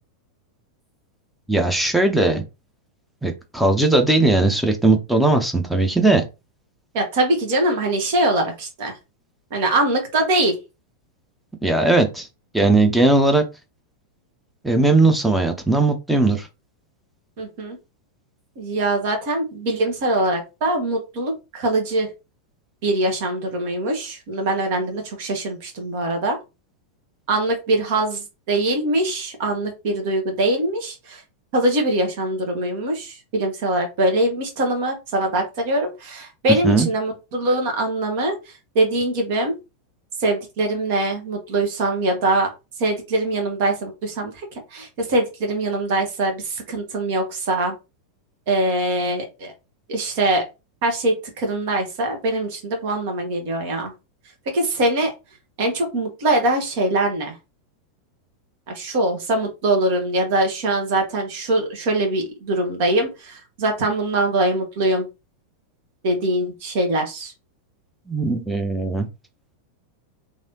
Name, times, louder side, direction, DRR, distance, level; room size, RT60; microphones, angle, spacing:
voice 1, 1.5-2.4 3.2-6.2 11.6-12.3 12.5-13.4 14.6-16.5 36.6-36.9 68.1-69.1, right 2 dB, 5° right, 4 dB, 0.7 m, -18 dB
voice 2, 6.9-9.0 9.5-10.6 17.4-17.8 18.6-22.1 22.8-26.4 27.3-31.2 31.5-39.5 40.2-42.5 42.8-44.5 44.7-47.8 48.5-49.5 49.9-50.4 50.8-53.9 54.5-55.1 55.6-57.3 58.7-65.0 66.0-67.3, right 1 dB, 50° right, 4 dB, 1.2 m, -22 dB
3.2 x 2.6 x 2.8 m, 0.27 s
figure-of-eight pair, 90°, 0 cm